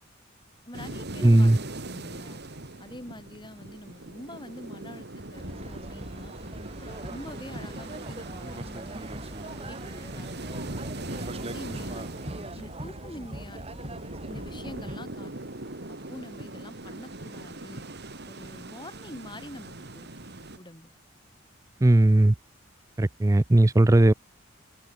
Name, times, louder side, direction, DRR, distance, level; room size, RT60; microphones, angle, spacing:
voice 1, 0.7-1.5 1.8-2.4 2.8-6.3 6.8-9.1 9.4-10.7 11.1-14.0 14.3-15.5 15.9-17.9 18.3-20.1 20.6-20.9, left 1 dB, 25° left, 7.9 m, -45 dB
sound 1, 0.7-20.6, right 2 dB, 60° right, 3.2 m, -41 dB
voice 2, 1.2-1.6 21.8-22.3 23.0-24.1, right 1 dB, 15° right, 0.4 m, -18 dB
sound 2, 5.3-15.0, right 1 dB, 30° right, 6.1 m, -40 dB
head